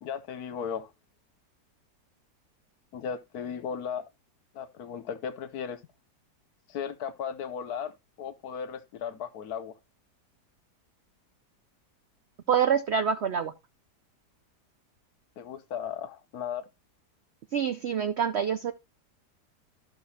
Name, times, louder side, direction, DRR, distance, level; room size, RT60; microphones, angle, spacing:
voice 1, 0.0-0.9 2.9-4.0 4.5-5.8 6.7-9.7 15.4-16.6, left 7 dB, 70° left, 1.2 m, -36 dB
voice 2, 12.5-13.5 17.5-18.7, right 7 dB, 75° right, 0.6 m, -26 dB
13.0 x 6.2 x 2.8 m
omnidirectional pair, 1.8 m